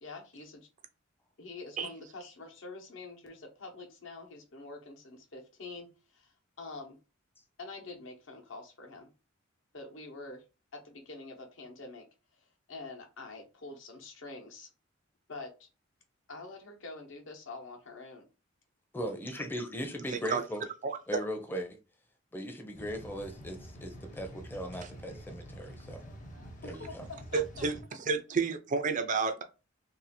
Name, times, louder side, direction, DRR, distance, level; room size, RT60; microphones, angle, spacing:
voice 1, 0.0-0.7 1.4-7.0 7.6-9.1 9.7-10.4 10.7-12.0 12.7-14.7 15.3-15.7 16.3-18.3 26.6-27.6, left 3 dB, 70° left, 1.0 m, -46 dB
voice 2, 18.9-20.6 21.1-21.8 22.3-26.0 26.6-27.0, equal, 10° left, 0.6 m, -38 dB
sound 1, 22.7-27.8, equal, 40° left, 0.8 m, -47 dB
voice 3, 27.3-27.8 28.1-29.4, right 4 dB, 40° right, 0.4 m, -30 dB
2.7 x 2.4 x 4.1 m
head